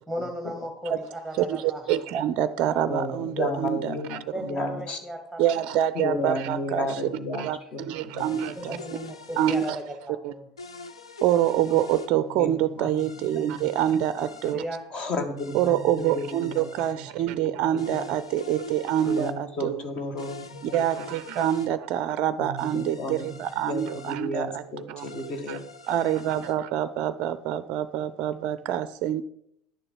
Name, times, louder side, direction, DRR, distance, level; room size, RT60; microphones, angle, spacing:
voice 1, 0.1-2.1 4.3-5.6 6.2-6.3 8.6-10.5 14.4-14.8, equal, 10° left, 2.0 m, -36 dB
voice 2, 1.4-4.2 5.4-7.0 7.4-7.6 7.9-8.8 9.4-9.8 10.2-10.3 11.2-14.6 15.5-19.9 20.6-24.6 24.9-25.1 25.5-25.6 25.9-29.2, right 11 dB, 50° right, 0.4 m, -26 dB
voice 3, 2.9-5.0 6.0-7.5 7.7-7.9 8.1-8.2 8.7-8.8 12.4-12.9 13.3-13.7 14.9-16.7 17.0-17.1 17.9-18.0 19.0-20.8 22.4-23.3 23.6-25.6, left 2 dB, 40° left, 1.7 m, -32 dB
sound 1, 8.2-9.8 10.6-12.1 13.0-14.6 15.4-17.0 17.8-19.4 20.2-21.7 22.6-24.2 25.0-26.6, left 3 dB, 85° left, 0.6 m, -44 dB
10.5 x 6.8 x 5.3 m
figure-of-eight pair, 75°, 3 cm